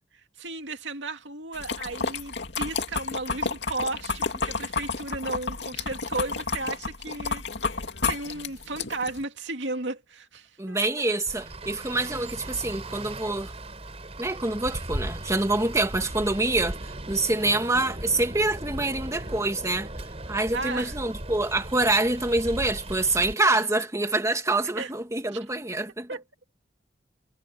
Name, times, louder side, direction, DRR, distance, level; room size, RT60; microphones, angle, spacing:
voice 1, 0.4-7.4 8.1-10.8 16.6-16.7 20.5-21.0 23.5-23.6 24.8-24.9 25.3-25.4 26.1-26.2, right 3 dB, 90° right, 2.2 m, -34 dB
sound 1, 1.5-9.2, left 4 dB, 70° left, 2.5 m, -31 dB
voice 2, 10.6-13.5 14.2-19.9 20.3-26.1, right 2 dB, 15° right, 1.7 m, -26 dB
Traffic noise roadway noise, 11.3-23.3, right 1 dB, 35° right, 4.0 m, -37 dB
head